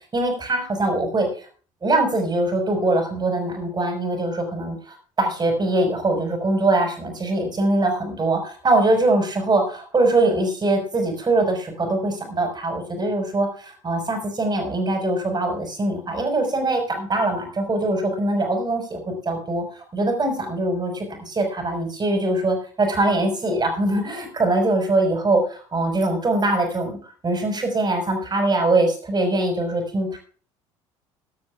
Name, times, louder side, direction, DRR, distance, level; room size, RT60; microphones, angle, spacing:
voice 1, 0.1-1.5 1.8-4.8 5.2-19.6 19.9-27.0 27.2-30.2, right 2 dB, 25° right, 4 dB, 5.6 m, -22 dB
19.0 x 12.5 x 2.4 m, 0.40 s
figure-of-eight pair, 60°, 17 cm